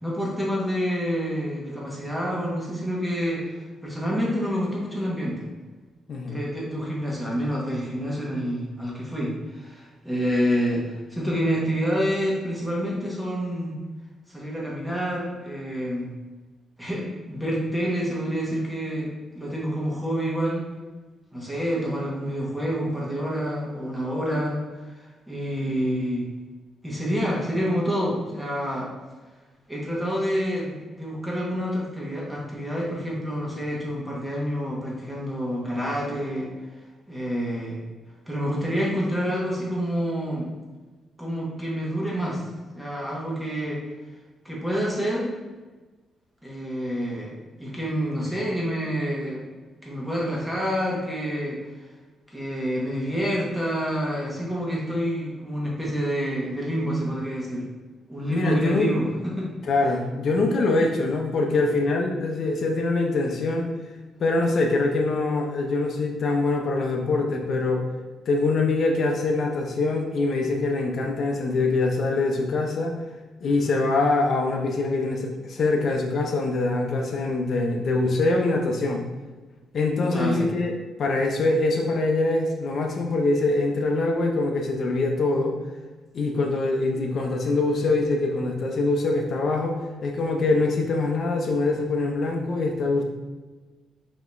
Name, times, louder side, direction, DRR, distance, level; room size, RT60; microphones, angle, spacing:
voice 1, 0.0-5.5 6.2-13.8 14.3-16.1 16.8-20.6 21.3-26.3 26.8-28.9 29.7-36.5 37.1-37.8 38.3-40.5 41.2-42.4 42.7-43.8 44.4-45.3 46.4-49.5 49.8-51.6 52.3-57.7 58.1-59.5 80.0-80.5, equal, 5° right, -4 dB, 1.3 m, -28 dB
voice 2, 58.3-58.9 59.7-63.7 64.2-67.8 68.3-72.9 73.4-79.0 79.7-85.6 86.1-93.0, left 3 dB, 60° left, 2 dB, 0.7 m, -24 dB
5.2 x 3.0 x 2.6 m, 1.3 s
cardioid pair, 90°, 0 cm